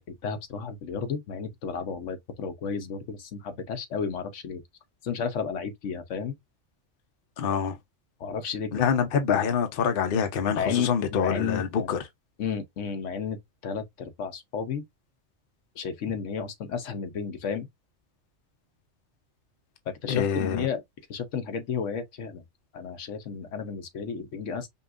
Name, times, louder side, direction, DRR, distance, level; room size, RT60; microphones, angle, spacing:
voice 1, 0.2-4.6 5.0-6.4 8.2-8.7 10.5-10.9 11.2-11.6 12.4-13.4 13.6-14.8 15.8-17.7 20.0-20.8 21.1-22.4 22.7-24.7, left 6 dB, 80° left, 1.1 m, -32 dB
voice 2, 7.4-7.8 8.7-12.0 20.1-20.7, left 7 dB, 55° left, 0.8 m, -26 dB
5.3 x 2.4 x 2.4 m
omnidirectional pair, 1.2 m